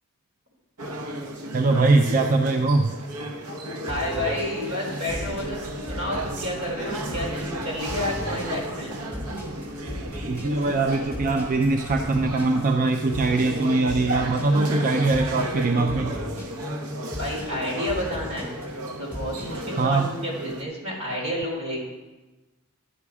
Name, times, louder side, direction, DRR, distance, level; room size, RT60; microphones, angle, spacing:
sound 1, 0.8-20.6, right 1 dB, 90° right, 1.0 m, -34 dB
voice 1, 1.5-3.0 6.1-6.3 10.3-16.2 19.8-20.1, right 3 dB, 40° right, 5 dB, 0.4 m, -22 dB
sound 2, 3.9-19.8, left 1 dB, 10° right, 3.4 m, -37 dB
voice 2, 3.9-8.9 17.2-18.5 18.9-21.8, left 1 dB, 70° right, -3 dB, 3.8 m, -30 dB
sound 3, 4.1-14.3, right 1 dB, 55° right, 1.3 m, -46 dB
11.5 x 7.2 x 4.8 m, 1.2 s
head